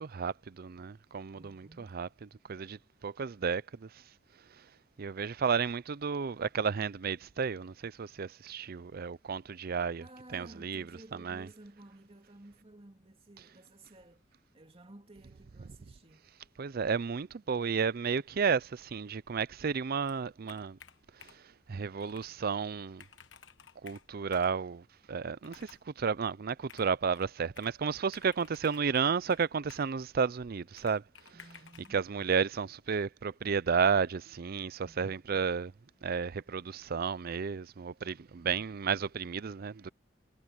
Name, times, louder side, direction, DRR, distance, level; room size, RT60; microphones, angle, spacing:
voice 1, 0.0-2.1 2.5-3.9 5.0-10.0 10.3-10.9 11.2-11.5 16.6-20.8 21.2-21.3 21.7-23.0 23.8-31.0 31.9-35.7 36.0-39.9, right 6 dB, 50° right, 0.5 m, -32 dB
voice 2, 1.3-2.0 10.0-14.2 14.5-16.3 31.3-32.1 34.8-35.4, right 1 dB, 30° right, 2.4 m, -55 dB
Computer keyboard, 20.0-21.5 22.0-22.3 22.7-22.8 23.0-24.6 25.4-25.9 26.7-27.8 28.1-30.0 30.8-31.9, left 8 dB, 65° left, 1.3 m, -55 dB
head